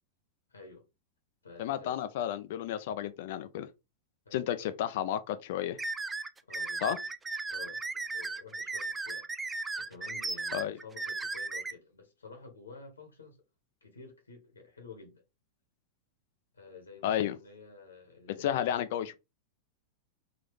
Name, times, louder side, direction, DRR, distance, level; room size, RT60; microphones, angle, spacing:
voice 1, 0.5-0.9 1.4-2.1 4.2-4.8 6.5-7.0 7.5-9.3 9.8-13.4 13.8-15.2 16.5-18.9, left 4 dB, 75° left, 1.3 m, -51 dB
voice 2, 1.6-3.7 4.3-5.8 6.8-7.0 10.5-10.8 17.0-17.4 18.4-19.1, left 10 dB, 50° left, 0.4 m, -32 dB
sound 1, 5.8-11.7, right 3 dB, 10° right, 0.3 m, -36 dB
3.9 x 2.8 x 3.4 m
figure-of-eight pair, 90°, 0 cm